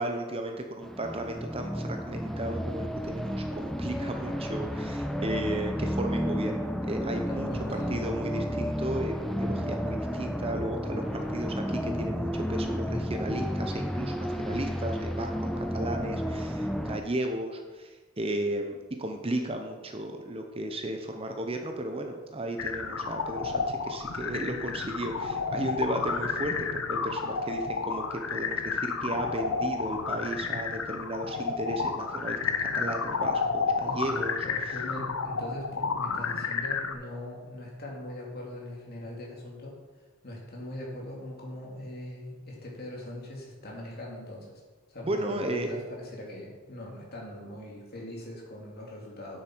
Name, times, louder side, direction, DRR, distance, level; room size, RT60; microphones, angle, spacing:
voice 1, 0.0-6.5 6.8-18.7 19.0-34.4 34.7-34.8 45.0-45.8, right 1 dB, 25° right, 4 dB, 0.7 m, -34 dB
sound 1, 0.8-17.0, equal, ahead, 0.4 m, -32 dB
voice 2, 7.3-8.0 33.8-39.8 40.2-44.6 44.9-49.4, left 1 dB, 45° left, -3 dB, 2.5 m, -41 dB
sound 2, 22.6-36.9, left 5 dB, 70° left, 0.7 m, -31 dB
9.5 x 7.6 x 4.6 m, 1.3 s
head